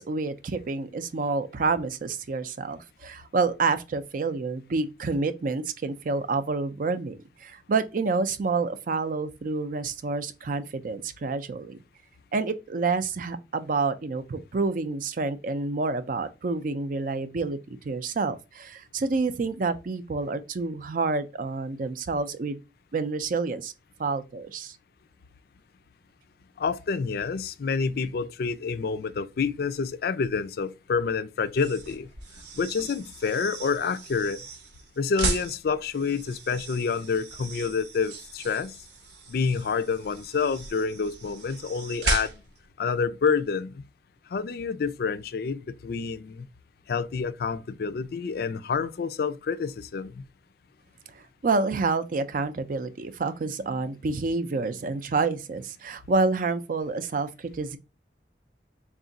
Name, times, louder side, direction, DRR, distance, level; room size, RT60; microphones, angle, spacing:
voice 1, 0.0-11.8 12.3-22.6 22.9-23.7 24.0-24.8 51.4-57.8, right 4 dB, 50° right, 0.4 m, -28 dB
voice 2, 26.6-32.1 32.5-34.4 35.0-38.8 39.3-42.4 42.8-43.8 44.3-46.5 46.9-50.2, left 5 dB, 60° left, 0.4 m, -28 dB
sound 1, 31.5-42.7, right 3 dB, 80° right, 0.8 m, -36 dB
3.5 x 2.4 x 3.8 m
head